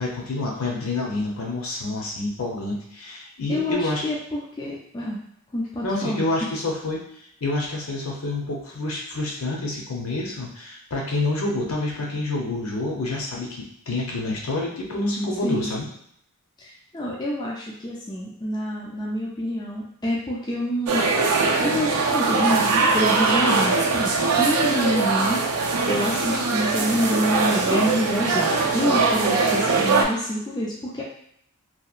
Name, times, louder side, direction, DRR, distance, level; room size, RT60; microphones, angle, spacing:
voice 1, 0.0-4.1 5.8-7.0 7.4-15.9, left 2 dB, 65° left, -2 dB, 0.6 m, -28 dB
voice 2, 3.5-5.2 5.5-6.2 15.4-15.7 16.6-21.0 21.6-25.4 25.9-28.5 28.7-31.0, equal, 20° left, -4 dB, 0.3 m, -27 dB
sound 1, 20.9-30.0, right 4 dB, 75° right, 0.4 m, -21 dB
2.8 x 2.2 x 2.3 m, 0.69 s
head